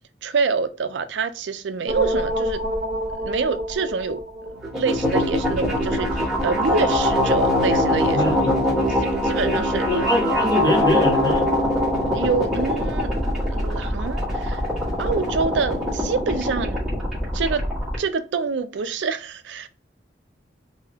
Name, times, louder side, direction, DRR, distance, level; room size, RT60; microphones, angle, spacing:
voice 1, 0.2-2.7 3.2-8.4 9.0-9.8 12.1-13.1 13.5-14.6 15.0-16.8 17.3-17.7 18.0-19.7, right 5 dB, 80° right, 0.4 m, -26 dB
sound 1, 1.9-18.0, left 1 dB, ahead, 1.4 m, -23 dB
voice 2, 8.1-8.9 9.5-9.6 9.9-11.5, left 1 dB, 20° left, 1.1 m, -23 dB
3.4 x 2.7 x 3.5 m
head